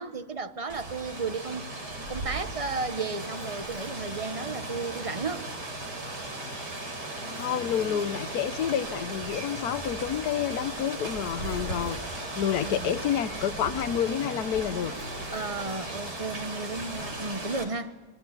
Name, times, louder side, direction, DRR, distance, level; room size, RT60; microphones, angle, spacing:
voice 1, 0.0-1.6 2.1-5.5 12.6-12.9 15.3-17.9, right 4 dB, 30° right, 0.7 m, -34 dB
Rain, 0.7-17.6, right 2 dB, 70° right, 4.7 m, -37 dB
Camera, 3.2-4.6 5.3-5.4 5.6-5.7 6.3-6.4 7.2-8.5 9.2-9.3 11.3-12.5 13.3-13.4 13.6-13.7 14.8-16.0, left 2 dB, 85° left, 5.8 m, -52 dB
voice 2, 7.4-14.9, left 9 dB, 65° left, 1.3 m, -29 dB
sound 1, 7.5-8.8 9.1-10.8 11.2-16.4, equal, 5° left, 4.2 m, -48 dB
26.5 x 21.5 x 7.4 m
omnidirectional pair, 1.9 m